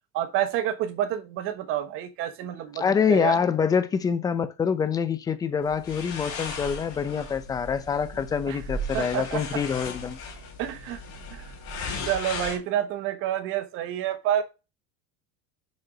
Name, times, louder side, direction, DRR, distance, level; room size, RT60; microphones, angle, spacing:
voice 1, 0.1-3.4 8.5-8.6 8.9-9.6 10.6-11.0 11.3-11.5 12.1-14.4, right 11 dB, 40° right, 1.1 m, -29 dB
voice 2, 2.7-10.2, left 6 dB, 10° left, 0.4 m, -26 dB
sound 1, 5.7-12.6, left 2 dB, 40° left, 2.8 m, -36 dB
6.3 x 4.5 x 5.0 m
cardioid pair, 170°, 32 cm